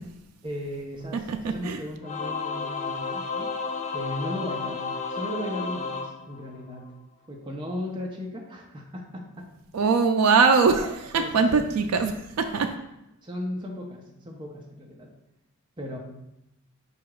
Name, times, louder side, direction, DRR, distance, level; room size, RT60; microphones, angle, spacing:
voice 1, 0.4-3.5 3.9-6.8 7.3-9.5 11.1-11.7 13.2-15.1 15.8-16.0, left 1 dB, 20° right, -1 dB, 0.5 m, -36 dB
Singing / Musical instrument, 2.0-6.9, left 4 dB, 30° left, 0.3 m, -32 dB
voice 2, 9.7-12.7, right 5 dB, 80° right, 5 dB, 0.4 m, -21 dB
4.9 x 2.3 x 4.7 m, 0.86 s
head